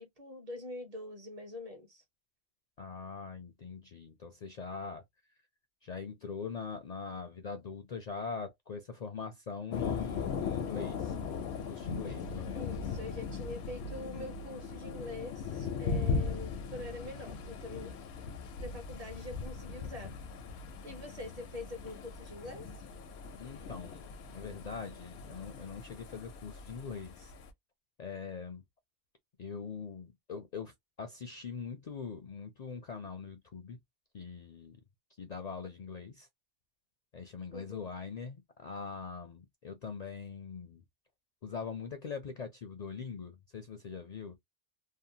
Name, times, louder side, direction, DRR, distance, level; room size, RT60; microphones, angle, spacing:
voice 1, 0.0-2.0 12.5-17.9 18.6-20.1 20.8-22.7 37.5-37.9, left 2 dB, 40° right, 0.8 m, -44 dB
voice 2, 2.8-5.0 5.8-11.2 11.6-12.6 23.4-27.3 28.0-28.6 29.4-33.8 34.1-34.8 35.2-36.3 37.1-40.8 41.4-44.4, left 5 dB, 55° left, 0.5 m, -42 dB
Thunder, 9.7-27.5, left 5 dB, 85° left, 0.9 m, -39 dB
2.6 x 2.0 x 2.7 m
omnidirectional pair, 1.1 m